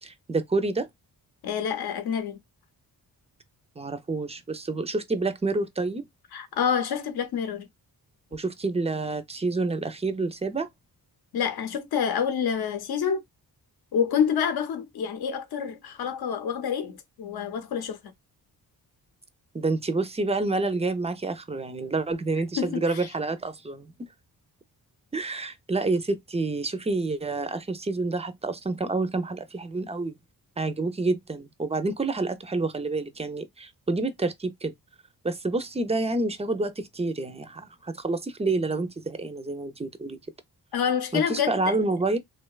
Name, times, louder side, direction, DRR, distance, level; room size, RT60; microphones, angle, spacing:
voice 1, 0.0-0.9 3.8-6.1 8.3-10.7 19.5-24.1 25.1-30.1 30.6-34.7 35.2-40.2 41.1-42.2, right 3 dB, 15° right, 0.3 m, -28 dB
voice 2, 1.4-2.4 6.3-7.7 11.3-13.2 13.9-18.0 22.6-23.1 40.7-41.8, left 7 dB, 70° left, 0.7 m, -27 dB
2.7 x 2.2 x 2.2 m
cardioid pair, 90°, 39 cm